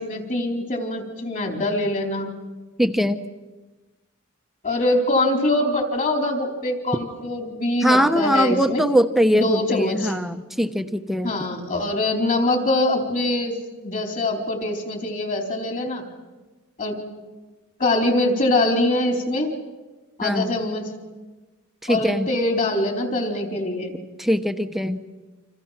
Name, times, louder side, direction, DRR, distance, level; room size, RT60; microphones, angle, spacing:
voice 1, 0.0-2.3 4.6-8.8 9.3-10.1 11.2-16.0 16.8-17.0 17.8-19.5 20.2-20.9 21.9-24.0, left 1 dB, 40° left, 2 dB, 4.3 m, -23 dB
voice 2, 2.8-3.2 7.8-11.3 20.2-20.6 21.8-22.3 24.2-25.0, equal, ahead, 7 dB, 0.9 m, -21 dB
30.0 x 27.0 x 6.0 m, 1.2 s
head